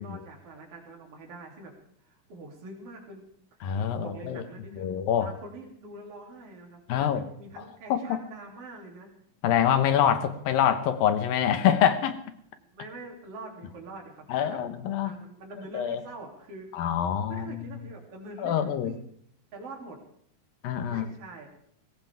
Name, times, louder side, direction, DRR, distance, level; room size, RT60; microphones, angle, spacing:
voice 1, 0.0-1.7 2.0-3.6 3.9-4.9 5.2-9.1 9.8-9.9 10.3-10.4 12.7-14.6 15.0-16.7 17.3-19.0 19.5-20.0 20.9-21.5, right 2 dB, 40° right, 0 dB, 3.8 m, -45 dB
voice 2, 3.6-4.4 4.7-5.3 6.9-7.2 7.9-8.2 9.4-12.2 14.3-15.2 15.7-16.0 16.7-17.8 18.4-19.0 20.6-21.1, left 9 dB, 75° left, 9 dB, 2.9 m, -25 dB
20.5 x 17.5 x 3.6 m, 0.68 s
omnidirectional pair, 4.2 m